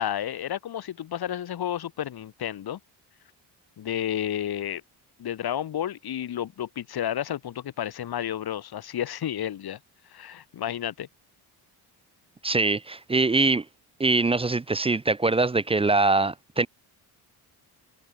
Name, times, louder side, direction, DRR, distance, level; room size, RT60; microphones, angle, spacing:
voice 1, 0.0-2.8 3.8-4.8 5.2-9.8 10.1-11.1, left 10 dB, 60° left, 2.2 m, -31 dB
voice 2, 12.4-13.6 14.0-16.7, right 3 dB, 15° right, 0.4 m, -23 dB
cardioid pair, 120°, 41 cm